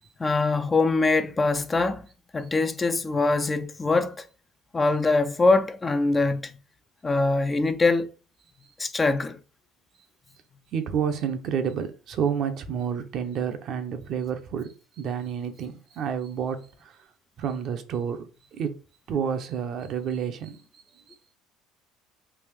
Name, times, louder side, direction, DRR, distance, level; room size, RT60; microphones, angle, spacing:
voice 1, 0.2-2.1 2.3-4.3 4.7-6.5 7.0-8.1 8.8-9.4, left 3 dB, 20° left, 0.3 m, -23 dB
voice 2, 10.7-14.7 15.0-16.9 17.4-18.2 18.5-18.7 19.1-20.6 21.1-21.2, right 7 dB, 55° right, 0.6 m, -29 dB
3.4 x 2.5 x 3.4 m
supercardioid pair, 105°, 0 cm